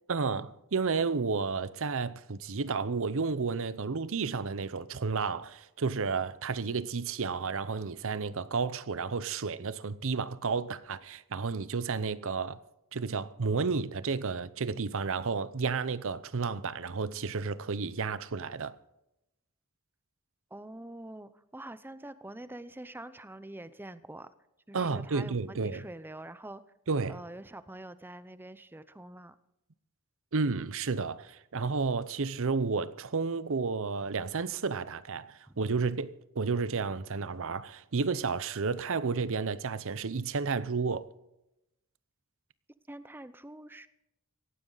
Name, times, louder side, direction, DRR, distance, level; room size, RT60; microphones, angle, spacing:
voice 1, 0.1-12.6 12.9-18.8 24.7-25.8 26.9-27.2 30.3-41.1, right 4 dB, 65° right, 0.7 m, -32 dB
voice 2, 20.5-24.3 24.7-26.6 27.1-29.3 35.5-35.6 42.9-43.9, right 1 dB, 10° right, 0.7 m, -45 dB
18.0 x 15.5 x 4.0 m
head